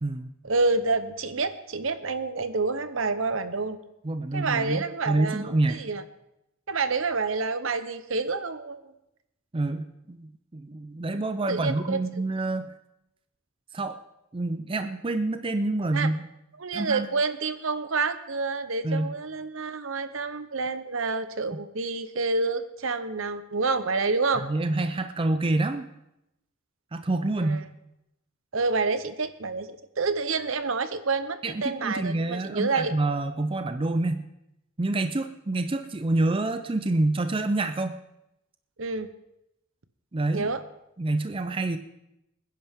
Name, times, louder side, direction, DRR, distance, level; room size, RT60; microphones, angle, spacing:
voice 1, 0.4-3.8 4.3-6.0 6.7-8.9 11.5-12.2 15.9-16.1 16.6-24.4 27.4-27.6 28.5-32.9 38.8-39.1 40.3-40.6, right 3 dB, 65° right, 11 dB, 0.9 m, -28 dB
voice 2, 4.0-5.8 9.5-12.7 13.7-14.0 14.3-16.3 16.7-17.1 18.8-19.1 24.4-25.9 26.9-27.6 31.4-34.3 34.8-38.0 40.1-40.5 41.0-41.8, right 2 dB, 25° right, 9 dB, 0.5 m, -27 dB
24.0 x 10.5 x 3.6 m, 0.86 s
head